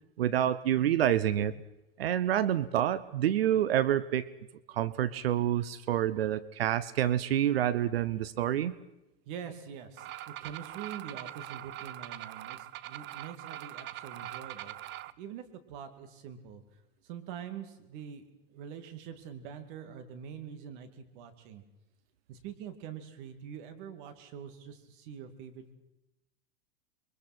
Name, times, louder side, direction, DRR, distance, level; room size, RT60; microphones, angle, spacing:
voice 1, 0.2-1.5 2.0-4.3 4.7-8.7, right 11 dB, 85° right, 17 dB, 0.8 m, -28 dB
voice 2, 9.3-16.6 17.0-21.6 22.3-25.7, right 8 dB, 60° right, 7 dB, 2.6 m, -45 dB
sound 1, 10.0-15.1, right 14 dB, 40° right, 0.7 m, -42 dB
28.5 x 22.5 x 4.4 m, 0.95 s
hypercardioid pair, 110°, 29 cm